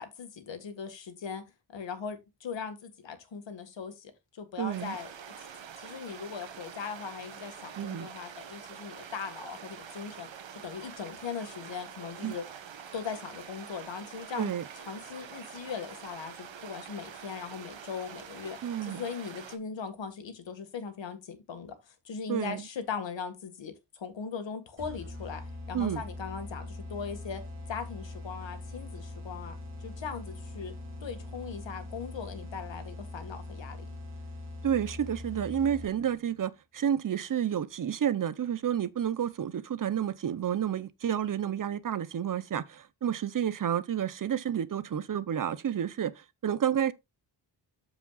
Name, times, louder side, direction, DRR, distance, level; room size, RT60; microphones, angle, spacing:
voice 1, 0.0-1.4 1.7-5.1 5.8-10.3 10.6-12.4 12.9-14.5 14.9-25.4 25.7-27.4 27.7-29.6 29.8-30.7 31.0-33.8, left 6 dB, 80° left, 1.8 m, -39 dB
voice 2, 4.6-5.0 7.8-8.1 12.2-12.3 14.4-14.7 18.6-19.0 22.3-22.6 25.7-26.0 34.6-46.9, right 9 dB, 45° right, 0.7 m, -30 dB
sound 1, 4.7-19.6, right 8 dB, 85° right, 1.3 m, -46 dB
sound 2, 24.8-36.2, left 2 dB, 30° right, 2.6 m, -42 dB
13.5 x 5.0 x 2.4 m
wide cardioid pair, 145°, 44 cm